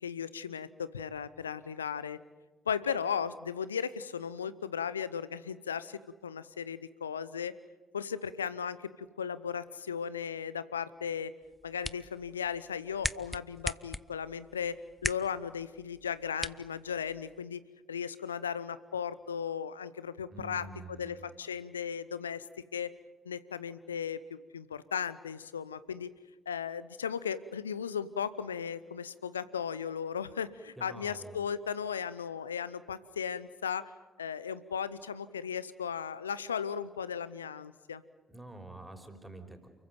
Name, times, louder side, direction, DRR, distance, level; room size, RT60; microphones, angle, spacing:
voice 1, 0.0-2.2 2.7-7.5 7.9-11.3 11.6-17.6 17.9-22.4 22.7-22.9 23.2-26.1 26.5-33.9 34.2-38.0, left 7 dB, 85° left, 17 dB, 0.7 m, -36 dB
sound 1, 11.4-17.4, left 1 dB, 10° left, 0.8 m, -41 dB
voice 2, 20.3-21.2 30.8-31.5 38.3-39.7, right 2 dB, 10° right, 5 dB, 5.0 m, -47 dB
29.0 x 15.0 x 9.2 m, 1.3 s
figure-of-eight pair, 40°, 0 cm